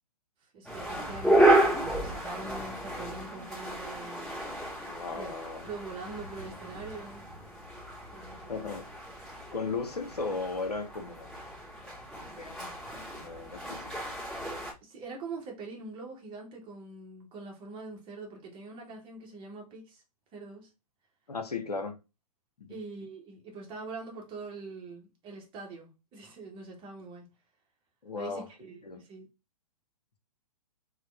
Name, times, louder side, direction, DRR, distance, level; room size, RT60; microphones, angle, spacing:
voice 1, 0.5-4.3 5.1-5.3 5.7-7.2 8.1-8.6 14.8-20.0 20.3-20.7 22.7-27.3 28.1-29.3, right 3 dB, 25° right, 1.1 m, -43 dB
sound 1, 0.6-14.7, right 1 dB, ahead, 1.6 m, -31 dB
voice 2, 4.9-5.7 8.5-8.8 9.5-11.3 12.4-12.7 13.2-13.8 21.3-22.0 22.6-22.8 28.0-28.5 28.8-29.0, left 4 dB, 85° left, 0.8 m, -36 dB
3.4 x 2.4 x 3.1 m
figure-of-eight pair, 120°, 20 cm